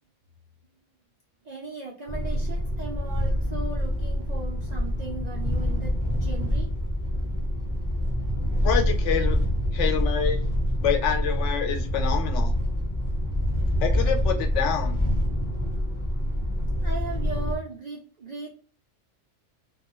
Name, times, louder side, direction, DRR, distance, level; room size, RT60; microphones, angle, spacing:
voice 1, 1.4-5.9 6.2-6.7 16.8-18.5, right 3 dB, 80° right, -2 dB, 0.3 m, -37 dB
sound 1, 2.1-17.6, equal, 30° left, 0.6 m, -26 dB
voice 2, 8.6-9.4 9.7-10.5 10.8-12.5 13.8-15.0, left 7 dB, 70° left, 5 dB, 0.9 m, -27 dB
2.3 x 2.2 x 2.9 m, 0.40 s
omnidirectional pair, 1.3 m